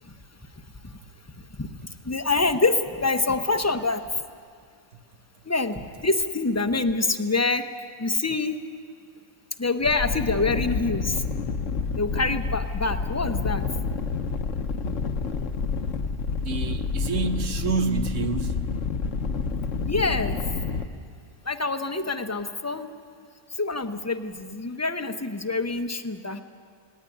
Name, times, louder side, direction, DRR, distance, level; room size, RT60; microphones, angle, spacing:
voice 1, 2.0-4.0 5.4-7.6 8.0-8.6 9.6-11.2 12.0-13.6 19.9-20.4 21.4-22.9 23.6-26.4, left 3 dB, 15° left, 8 dB, 0.7 m, -26 dB
sound 1, 9.8-20.9, left 4 dB, 70° left, 1.3 m, -28 dB
voice 2, 16.4-18.6, right 5 dB, 70° right, 7 dB, 1.5 m, -28 dB
18.5 x 17.5 x 10.0 m, 2.1 s
omnidirectional pair, 1.4 m